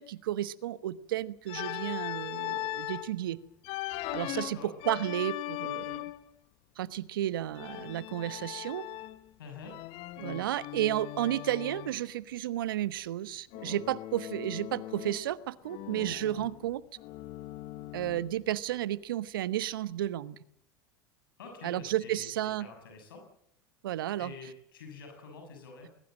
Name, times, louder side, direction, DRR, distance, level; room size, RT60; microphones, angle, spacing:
voice 1, 0.0-3.4 4.1-4.6 4.8-6.0 6.8-8.8 10.2-16.8 17.9-20.4 21.6-22.7 23.8-24.3, right 13 dB, 75° right, 16 dB, 1.1 m, -32 dB
Organ, 1.5-3.1 3.6-6.3 7.5-9.3 9.7-12.0 13.5-15.3 15.6-18.4, left 17 dB, 55° left, 1.3 m, -39 dB
voice 2, 4.2-4.7 9.4-9.7 21.4-22.2 22.6-23.2 24.2-25.9, left 4 dB, 75° left, 4 dB, 6.7 m, -47 dB
21.5 x 20.5 x 7.6 m, 0.72 s
hypercardioid pair, 85°, 12 cm